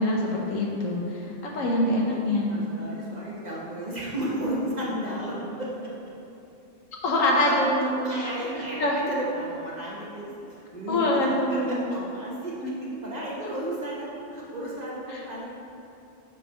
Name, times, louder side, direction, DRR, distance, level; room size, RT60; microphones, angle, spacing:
voice 1, 0.0-2.5 7.0-8.3 8.8-9.0 10.9-11.8 12.6-12.7 15.1-15.2, left 1 dB, 80° left, -2 dB, 1.3 m, -25 dB
voice 2, 2.5-5.7 7.4-7.5 7.8-12.5 13.0-15.5, equal, 35° right, -6 dB, 1.0 m, -33 dB
5.1 x 4.1 x 5.6 m, 2.9 s
omnidirectional pair, 1.4 m